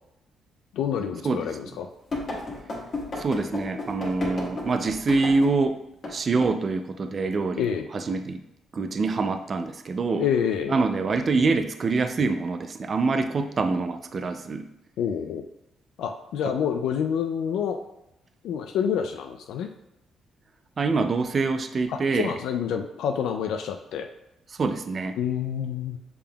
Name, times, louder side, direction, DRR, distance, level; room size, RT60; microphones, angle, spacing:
voice 1, 0.7-1.9 7.6-7.9 10.2-10.8 15.0-15.4 16.0-17.8 18.4-19.7 21.9-24.1 25.2-26.0, left 8 dB, 80° left, 5 dB, 0.3 m, -27 dB
sound 1, 2.1-5.6 6.0-6.1 6.4-6.6, left 2 dB, 45° left, 1.4 m, -32 dB
voice 2, 3.2-5.8 6.1-8.4 8.7-10.3 10.7-14.6 20.8-22.3 24.5-25.2, right 4 dB, 40° right, 8 dB, 0.3 m, -25 dB
6.7 x 3.5 x 2.3 m, 0.85 s
cardioid pair, 90°, 0 cm